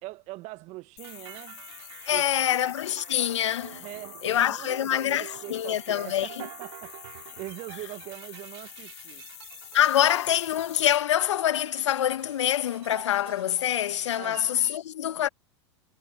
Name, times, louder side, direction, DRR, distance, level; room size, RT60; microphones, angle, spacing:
voice 1, 0.0-1.6 2.1-2.6 3.8-9.3 10.0-10.1 14.2-14.4, right 20 dB, 45° right, 1.9 m, -42 dB
sound 1, 1.0-11.0, left 24 dB, 60° left, 2.6 m, -46 dB
sound 2, 1.0-14.8, right 18 dB, 65° right, 3.1 m, -48 dB
voice 2, 2.0-3.8 4.2-6.3 9.7-15.3, left 11 dB, 75° left, 1.7 m, -25 dB
hypercardioid pair, 90°, 15 cm